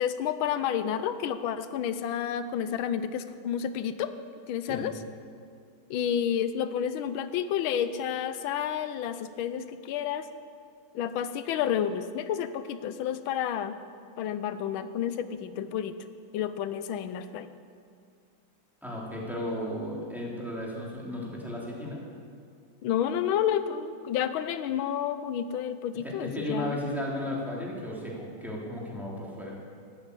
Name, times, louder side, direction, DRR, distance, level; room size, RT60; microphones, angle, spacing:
voice 1, 0.0-4.1 4.5-4.9 5.9-10.3 10.9-13.8 14.2-16.0 16.3-17.5 22.8-26.8, left 9 dB, 90° left, 12 dB, 1.5 m, -30 dB
voice 2, 18.8-22.0 26.0-29.6, left 1 dB, ahead, -4 dB, 3.0 m, -34 dB
13.0 x 11.5 x 8.3 m, 2.3 s
omnidirectional pair, 2.1 m